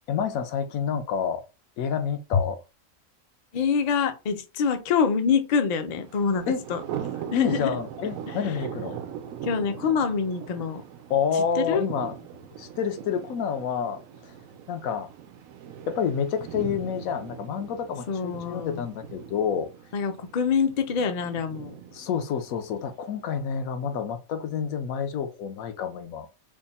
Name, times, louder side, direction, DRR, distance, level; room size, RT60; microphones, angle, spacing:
voice 1, 0.1-1.4 1.8-2.6 6.5-6.6 7.3-9.0 11.1-12.1 12.6-14.3 14.7-15.1 15.9-19.7 21.9-26.3, left 7 dB, 80° left, 1.1 m, -28 dB
voice 2, 3.5-6.4 6.7-6.8 7.3-7.7 8.3-8.4 9.4-10.8 11.6-11.8 18.1-18.8 19.9-21.7, left 6 dB, 60° left, 0.4 m, -25 dB
Thunder, 6.0-23.0, right 9 dB, 80° right, 1.0 m, -40 dB
3.5 x 2.1 x 4.0 m
omnidirectional pair, 1.4 m